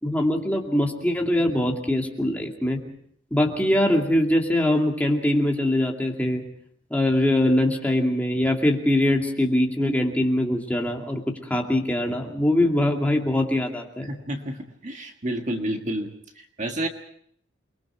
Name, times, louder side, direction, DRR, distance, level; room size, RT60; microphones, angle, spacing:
voice 1, 0.0-2.8 3.3-6.4 6.9-14.1, left 1 dB, 10° left, 0 dB, 2.5 m, -22 dB
voice 2, 14.1-16.1 16.4-16.9, right 1 dB, 35° right, 4 dB, 1.7 m, -30 dB
29.0 x 21.5 x 4.6 m, 0.64 s
head